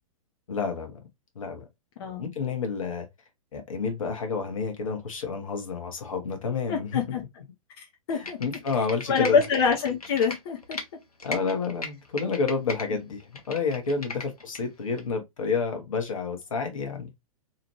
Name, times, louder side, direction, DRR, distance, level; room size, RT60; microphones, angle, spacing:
voice 1, 0.5-0.9 1.3-1.6 2.2-3.1 3.5-7.0 8.1-9.4 11.2-17.1, left 5 dB, 65° left, 1.0 m, -29 dB
voice 2, 6.7-7.2 7.8-8.4 9.1-10.8, left 6 dB, 45° left, 0.7 m, -25 dB
Computer keyboard, 8.1-10.8 11.2-12.9 13.2-14.6 15.0-15.1, left 3 dB, 90° left, 0.8 m, -37 dB
2.9 x 2.5 x 2.9 m
figure-of-eight pair, 110°, 18 cm